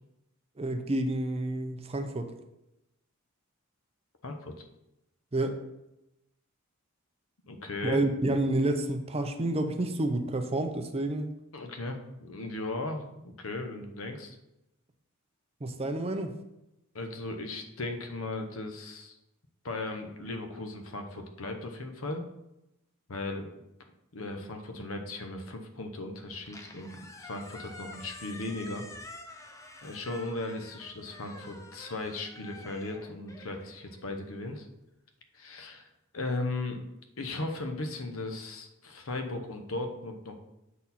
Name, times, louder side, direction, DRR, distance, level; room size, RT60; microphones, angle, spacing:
voice 1, 0.6-2.3 5.3-5.6 7.8-11.3 15.6-16.3, right 1 dB, 30° right, 7 dB, 0.6 m, -29 dB
voice 2, 4.2-4.6 7.5-8.0 11.5-14.4 16.9-19.2 19.6-22.2 23.1-23.5 24.1-28.8 29.8-34.7 35.3-36.8 37.2-40.4, left 2 dB, 70° left, 5 dB, 0.9 m, -37 dB
Squeak, 26.3-34.6, left 2 dB, 15° left, 0.6 m, -48 dB
7.4 x 4.2 x 4.2 m, 0.89 s
head